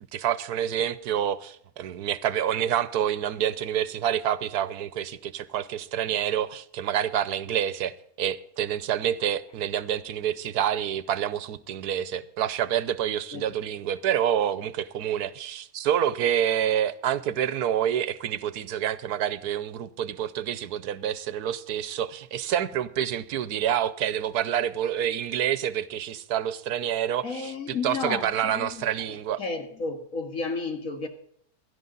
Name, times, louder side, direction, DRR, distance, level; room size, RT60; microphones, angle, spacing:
voice 1, 0.1-29.4, right 10 dB, 80° right, 1.3 m, -28 dB
voice 2, 27.2-31.1, left 4 dB, 60° left, 2.2 m, -33 dB
16.5 x 12.5 x 4.0 m
omnidirectional pair, 1.6 m